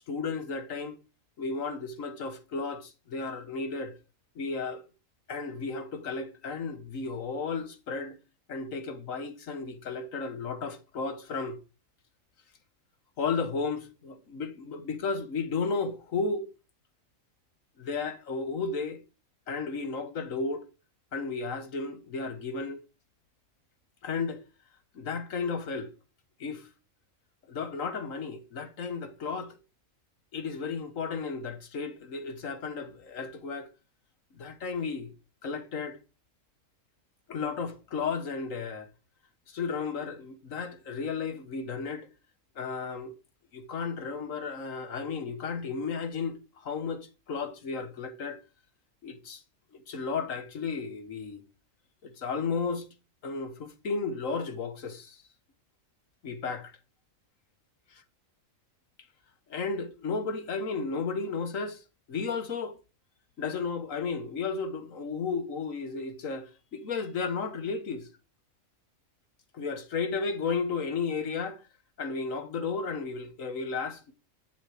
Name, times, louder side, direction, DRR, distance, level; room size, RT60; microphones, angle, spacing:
voice 1, 0.1-1.0 1.4-3.9 4.3-4.8 5.3-8.2 8.5-11.6 13.2-16.5 17.8-19.0 19.5-20.7 21.1-22.8 24.0-24.4 24.9-25.9 26.4-26.7 27.5-29.6 30.3-33.7 34.3-35.1 35.4-36.0 37.3-38.9 39.5-42.1 42.5-43.1 43.5-48.4 49.0-49.4 49.7-51.4 52.0-52.9 53.2-55.2 56.2-56.7 59.5-62.8 63.4-68.1 69.5-71.6 72.0-74.1, left 4 dB, 75° left, 1.6 m, -33 dB
9.7 x 7.5 x 4.9 m
omnidirectional pair, 1.4 m